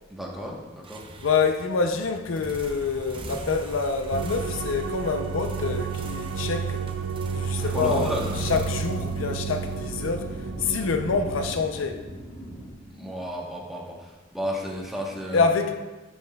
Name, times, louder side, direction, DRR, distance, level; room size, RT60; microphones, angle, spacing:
voice 1, 0.1-1.0 7.6-8.3 13.0-15.4, equal, ahead, 1.1 m, -32 dB
sound 1, 0.8-10.6, right 1 dB, 25° right, 0.6 m, -40 dB
voice 2, 1.2-6.8 7.3-12.0 15.3-15.8, left 4 dB, 70° left, 0.5 m, -26 dB
sound 2, 4.1-11.5, right 6 dB, 75° right, 0.4 m, -31 dB
sound 3, 7.7-12.7, equal, 20° left, 1.5 m, -40 dB
11.5 x 5.5 x 2.3 m
head